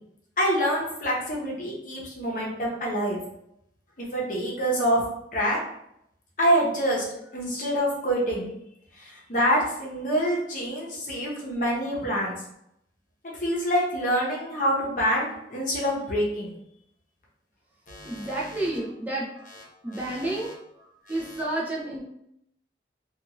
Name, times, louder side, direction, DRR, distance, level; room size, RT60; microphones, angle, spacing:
voice 1, 0.4-3.2 4.0-5.0 5.3-5.6 6.4-7.0 7.3-8.5 9.0-12.4 13.4-16.5 17.9-18.3 19.9-20.5 21.1-21.4, equal, 45° left, -4 dB, 0.8 m, -26 dB
voice 2, 18.0-19.3 19.8-20.5 21.1-22.0, right 1 dB, 10° right, -6 dB, 0.4 m, -30 dB
2.5 x 2.4 x 2.9 m, 0.77 s
head